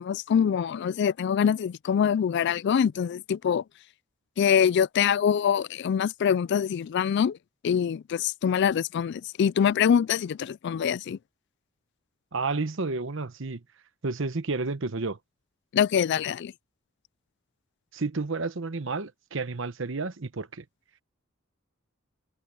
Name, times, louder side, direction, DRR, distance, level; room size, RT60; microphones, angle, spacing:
voice 1, 0.0-3.6 4.4-7.4 7.6-11.2 15.7-16.5, left 8 dB, 60° left, 0.3 m, -24 dB
voice 2, 12.3-13.6 14.0-15.2 17.9-20.6, right 3 dB, 70° right, 1.0 m, -31 dB
head